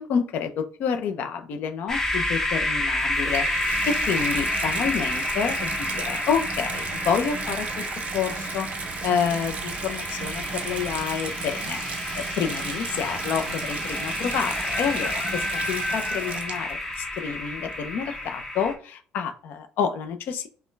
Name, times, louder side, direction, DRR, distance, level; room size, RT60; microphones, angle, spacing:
voice 1, 0.0-7.9 8.1-8.7 9.0-20.5, left 7 dB, 50° left, 8 dB, 0.6 m, -29 dB
sound 1, 1.9-18.7, left 1 dB, 10° left, 0.8 m, -30 dB
Water tap faucet / Bathtub (filling or washing), 2.9-16.9 17.7-17.8, right 6 dB, 35° right, 0.5 m, -35 dB
sound 2, 6.7-7.2 9.0-9.4 9.7-9.8 10.0-10.5 11.3-11.4 11.6-11.7 13.3-13.4 14.3-16.6 16.9-17.0 17.5-17.6 18.1-18.2, left 1 dB, 30° left, 1.2 m, -34 dB
5.3 x 2.2 x 3.2 m, 0.42 s
cardioid pair, 175°, 4 cm